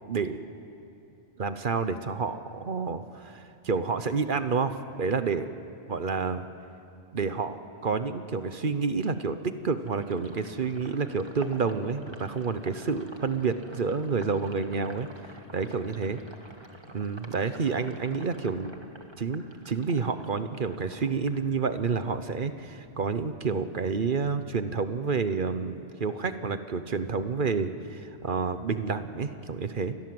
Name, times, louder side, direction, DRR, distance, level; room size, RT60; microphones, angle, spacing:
voice 1, 0.1-0.4 1.4-5.5 5.9-6.4 7.1-15.1 15.5-16.2 16.9-18.7 19.2-30.0, right 5 dB, 50° right, 10 dB, 1.0 m, -29 dB
Sink (filling or washing), 9.9-22.1 22.5-23.9, right 1 dB, 20° right, 1.9 m, -50 dB
29.0 x 23.0 x 7.8 m, 2.9 s
omnidirectional pair, 1.2 m